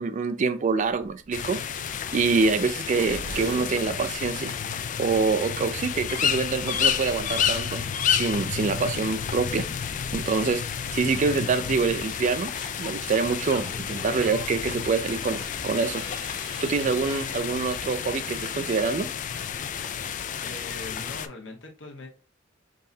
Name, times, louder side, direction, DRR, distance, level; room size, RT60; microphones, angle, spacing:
voice 1, 0.0-1.8 2.1-4.5 5.0-7.8 8.1-9.7 10.1-10.6 10.9-12.5 12.8-16.0 16.3-19.1, right 4 dB, 40° right, 0.3 m, -26 dB
sound 1, 0.7-16.1, right 2 dB, 70° right, 0.7 m, -47 dB
sound 2, 1.3-21.3, left 8 dB, 40° left, 0.3 m, -30 dB
Singing / Scratching (performance technique), 12.1-17.4, left 2 dB, 25° left, 0.9 m, -43 dB
voice 2, 20.4-22.1, left 2 dB, 75° left, 1.1 m, -41 dB
3.9 x 3.8 x 2.7 m
head